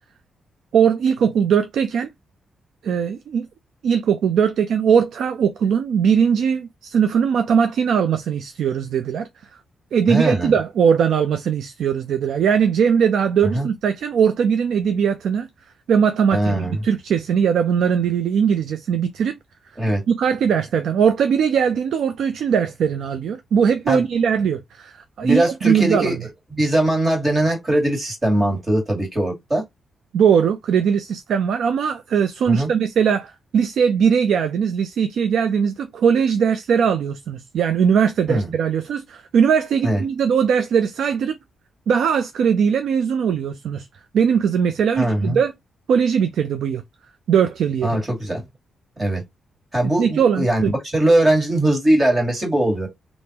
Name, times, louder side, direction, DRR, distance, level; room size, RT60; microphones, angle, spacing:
voice 1, 0.7-2.1 2.8-3.5 3.8-9.3 9.9-15.5 15.9-19.4 20.1-26.2 30.1-41.4 41.9-43.9 44.1-45.5 45.9-46.8 47.3-48.0 49.8-50.7, right 7 dB, 75° right, 0.4 m, -20 dB
voice 2, 10.1-10.5 13.5-13.7 16.3-16.8 19.8-20.0 23.9-24.0 25.2-26.2 26.5-29.6 32.5-32.7 38.3-38.5 39.8-40.0 45.0-45.4 47.8-48.4 49.0-49.2 49.7-52.9, right 1 dB, 20° right, 1.8 m, -20 dB
3.6 x 2.5 x 2.8 m
cardioid pair, 130°, 0 cm